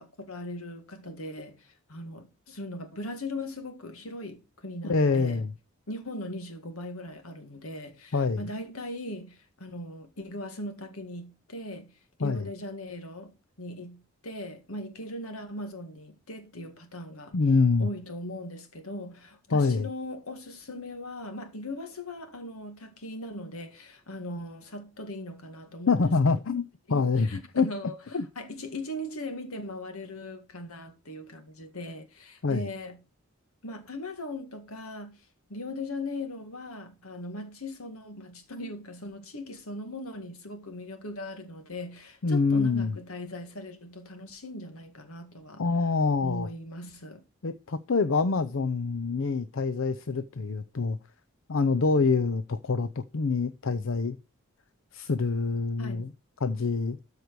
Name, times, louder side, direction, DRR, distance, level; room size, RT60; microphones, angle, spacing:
voice 1, 0.0-5.4 5.9-13.3 13.6-17.3 17.8-26.1 26.9-33.0 33.6-45.6 46.2-47.2 55.8-56.1, left 1 dB, 80° left, 1.8 m, -39 dB
voice 2, 4.8-5.5 8.1-8.4 12.2-12.5 17.3-17.9 19.5-19.9 25.9-27.7 28.1-28.3 32.4-32.7 42.2-43.0 45.6-46.5 47.4-51.0 51.5-54.2 54.9-56.1 56.4-57.0, left 4 dB, 65° left, 0.6 m, -26 dB
13.0 x 4.8 x 4.6 m
head